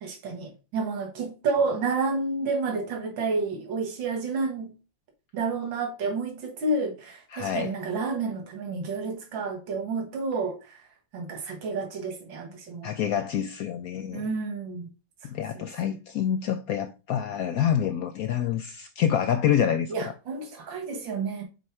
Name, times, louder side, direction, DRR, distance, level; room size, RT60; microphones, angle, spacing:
voice 1, 0.0-4.7 5.3-10.8 11.1-12.9 14.1-14.9 15.5-16.0 19.9-21.4, right 3 dB, 85° right, 2.2 m, -30 dB
voice 2, 7.3-7.7 12.8-14.3 15.2-20.1, left 9 dB, 75° left, 0.8 m, -27 dB
6.6 x 4.0 x 4.6 m
omnidirectional pair, 2.0 m